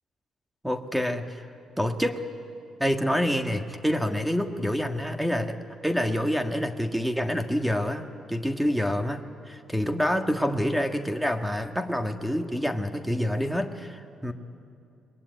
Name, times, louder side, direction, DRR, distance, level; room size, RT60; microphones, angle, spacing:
voice 1, 0.6-1.4 1.8-2.2 2.8-5.6 5.8-14.3, equal, 5° right, 6 dB, 1.6 m, -27 dB
25.5 x 21.0 x 9.5 m, 2.6 s
cardioid pair, 90°, 0 cm